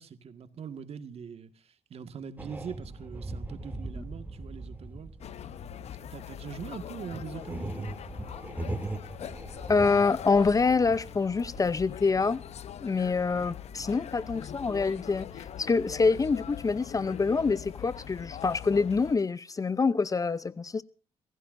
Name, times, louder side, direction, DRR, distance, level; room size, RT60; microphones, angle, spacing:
voice 1, 0.0-5.1 6.1-7.9 8.4-8.6 13.3-13.5, right 7 dB, 55° right, 1.9 m, -42 dB
sound 1, 2.4-12.8 13.1-15.5, right 1 dB, 15° right, 2.8 m, -40 dB
sound 2, 5.2-19.2, left 10 dB, 60° left, 0.9 m, -42 dB
voice 2, 9.7-12.4 12.8-20.8, left 4 dB, 30° left, 0.7 m, -26 dB
27.0 x 16.0 x 2.7 m
cardioid pair, 85°, 12 cm